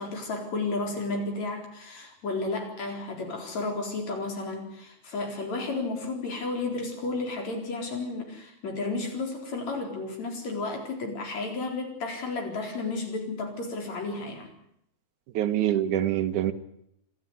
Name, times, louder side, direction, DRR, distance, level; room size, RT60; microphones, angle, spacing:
voice 1, 0.0-14.5, left 3 dB, 65° left, 2 dB, 5.6 m, -32 dB
voice 2, 15.3-16.5, right 11 dB, 90° right, 10 dB, 2.7 m, -25 dB
27.0 x 12.5 x 9.8 m, 0.76 s
omnidirectional pair, 3.4 m